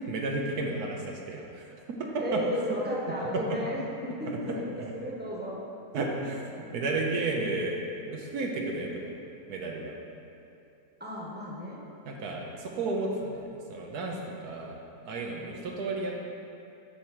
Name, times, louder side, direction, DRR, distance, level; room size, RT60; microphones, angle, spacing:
voice 1, 0.1-2.4 3.3-3.6 4.2-4.9 5.9-9.1 9.5-9.9 12.0-14.8 15.1-16.2, right 2 dB, 80° right, 0 dB, 1.3 m, -33 dB
voice 2, 2.2-4.1 4.5-5.6 11.0-11.8, equal, 5° right, -5 dB, 1.0 m, -33 dB
7.2 x 4.5 x 6.6 m, 2.7 s
omnidirectional pair, 1.6 m